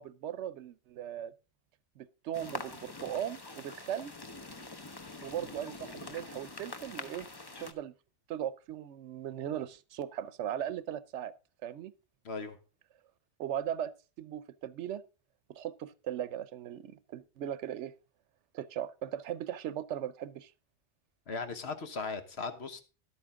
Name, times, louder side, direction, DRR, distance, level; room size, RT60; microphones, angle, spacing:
voice 1, 0.0-1.3 2.0-4.1 5.2-7.3 7.6-7.9 8.3-11.3 11.6-11.9 13.4-13.9 14.2-15.0 15.5-17.9 18.5-20.5, right 10 dB, 90° right, 0.9 m, -38 dB
sound 1, 2.3-7.7, left 3 dB, 25° left, 0.8 m, -45 dB
voice 2, 12.2-12.6 21.3-22.8, left 4 dB, 70° left, 1.5 m, -38 dB
11.0 x 8.7 x 3.6 m
omnidirectional pair, 1.2 m